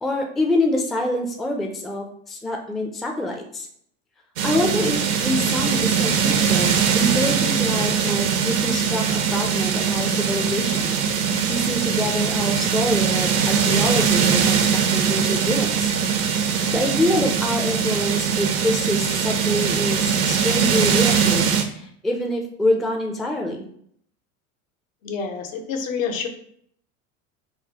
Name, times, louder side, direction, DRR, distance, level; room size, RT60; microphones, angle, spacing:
voice 1, 0.0-3.7 4.4-11.0 11.5-15.9 16.7-23.7, left 1 dB, ahead, 1 dB, 0.3 m, -26 dB
sound 1, 4.4-21.6, right 7 dB, 80° right, 0.7 m, -21 dB
voice 2, 25.0-26.3, left 6 dB, 75° left, 4 dB, 0.8 m, -28 dB
4.7 x 2.1 x 2.8 m, 0.65 s
hypercardioid pair, 85°, 40 cm